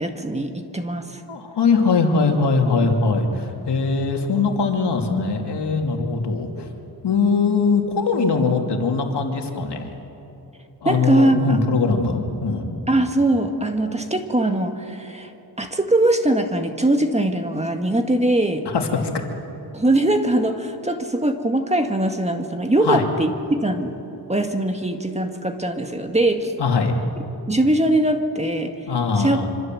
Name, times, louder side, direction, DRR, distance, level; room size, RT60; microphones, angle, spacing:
voice 1, 0.0-1.2 10.8-11.6 12.9-15.3 15.6-18.7 19.7-23.9 24.3-26.5 27.5-28.7 29.2-29.5, right 1 dB, 15° right, 5 dB, 1.7 m, -21 dB
voice 2, 1.3-6.7 7.0-9.9 10.8-12.7 18.7-19.1 22.8-23.0 26.6-27.0 28.9-29.5, left 4 dB, 70° left, 3 dB, 2.8 m, -21 dB
26.0 x 26.0 x 7.6 m, 3.0 s
wide cardioid pair, 115°, 41 cm